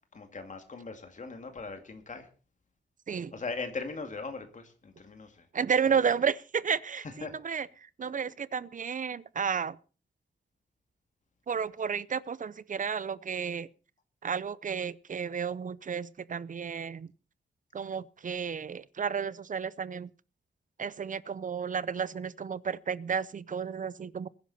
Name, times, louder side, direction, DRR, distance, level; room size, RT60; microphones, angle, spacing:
voice 1, 0.1-2.3 3.3-5.5 5.8-6.0 7.0-7.3, left 4 dB, 40° left, 2.3 m, -40 dB
voice 2, 5.5-7.7 8.0-9.8 11.5-13.7 14.2-17.1 17.7-20.1 20.8-24.3, right 6 dB, 45° right, 0.6 m, -32 dB
21.0 x 10.5 x 4.2 m
wide cardioid pair, 145°, 19 cm